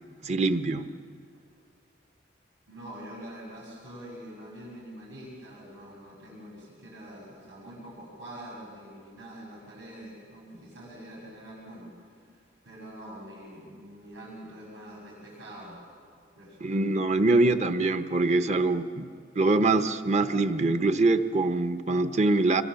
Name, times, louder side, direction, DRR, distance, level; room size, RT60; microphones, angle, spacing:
voice 1, 0.2-0.9 16.6-19.1 19.3-22.6, right 2 dB, 40° right, 10 dB, 0.9 m, -24 dB
voice 2, 2.7-15.8 16.3-16.8, right 1 dB, 75° right, -5 dB, 7.2 m, -45 dB
26.5 x 22.5 x 7.1 m, 2.2 s
head